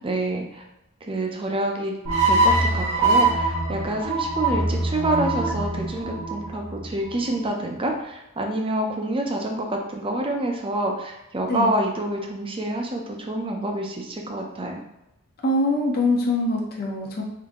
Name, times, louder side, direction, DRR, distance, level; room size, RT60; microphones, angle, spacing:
voice 1, 0.0-0.6 1.0-1.9 2.2-14.8, right 1 dB, 25° right, 2 dB, 0.6 m, -27 dB
sound 1, 2.0-7.3, right 2 dB, 85° right, 1.3 m, -23 dB
voice 2, 15.4-17.2, left 1 dB, 45° left, -1 dB, 0.7 m, -23 dB
3.8 x 2.7 x 3.5 m, 0.88 s
head